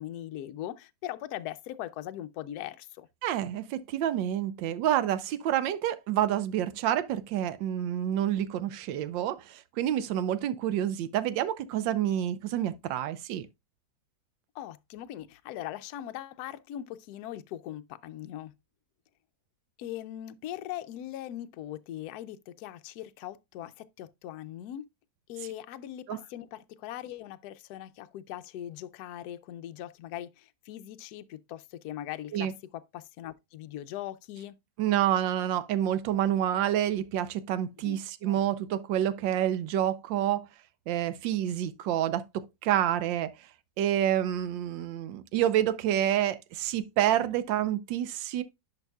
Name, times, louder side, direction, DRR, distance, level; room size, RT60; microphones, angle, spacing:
voice 1, 0.0-3.1 14.5-18.5 19.8-24.9 25.3-34.6 37.8-38.0 38.2-38.4, left 12 dB, 70° left, 0.9 m, -40 dB
voice 2, 3.2-13.5 26.1-26.2 32.3-32.5 34.8-40.5 40.9-43.3 43.8-48.4, right 11 dB, 80° right, 1.3 m, -28 dB
10.5 x 5.3 x 2.3 m
omnidirectional pair, 2.0 m